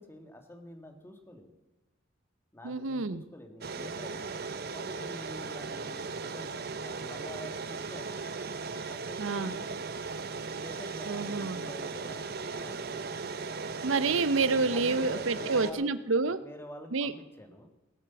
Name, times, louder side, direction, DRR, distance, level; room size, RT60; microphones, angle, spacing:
voice 1, 0.0-1.5 2.5-4.3 4.7-8.3 8.9-9.9 10.6-13.2 14.7-15.9 16.4-17.7, left 1 dB, 10° left, 4 dB, 1.9 m, -47 dB
voice 2, 2.6-3.2 9.2-9.5 11.0-11.6 13.8-16.4 16.9-17.1, right 4 dB, 85° right, 14 dB, 0.7 m, -28 dB
sound 1, 3.6-15.7, right 4 dB, 55° right, 0.9 m, -37 dB
18.5 x 8.3 x 7.0 m, 1.1 s
head